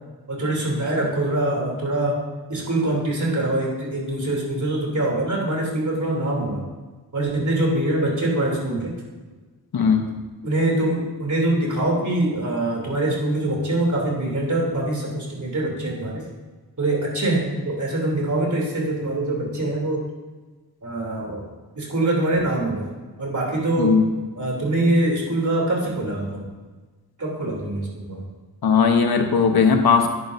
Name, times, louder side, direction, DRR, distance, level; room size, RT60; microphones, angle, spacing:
voice 1, 0.3-2.2 2.5-6.6 7.1-8.9 10.4-16.2 16.8-20.0 20.8-21.5 21.7-22.9 23.2-23.9 24.3-26.5 27.2-28.2, right 1 dB, 50° right, -2 dB, 3.2 m, -24 dB
voice 2, 9.7-10.1 23.8-24.1 28.6-30.1, left 5 dB, 75° left, 5 dB, 1.0 m, -18 dB
10.0 x 9.9 x 2.7 m, 1.3 s
cardioid pair, 55°, 38 cm